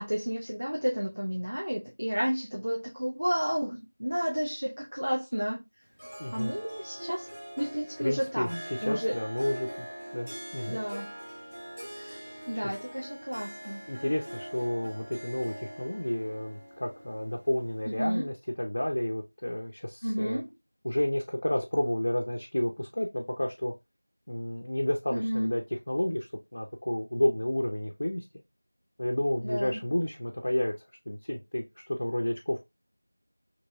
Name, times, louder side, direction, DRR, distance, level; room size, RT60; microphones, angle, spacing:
voice 1, 0.0-5.6 6.3-7.3 7.6-9.2 10.7-11.1 11.9-12.2 12.5-13.9 17.9-18.3 20.0-20.5 25.1-25.6 29.4-29.8, equal, 75° right, 1.0 m, -31 dB
Harp, 6.0-18.2, equal, 50° right, 0.8 m, -43 dB
voice 2, 8.0-9.9 10.1-10.8 12.2-12.3 12.6-13.0 13.9-20.4 20.8-23.7 24.3-28.2 29.0-30.7 31.1-32.6, left 1 dB, 25° left, 0.4 m, -31 dB
3.5 x 2.9 x 2.6 m
figure-of-eight pair, 180°, 0 cm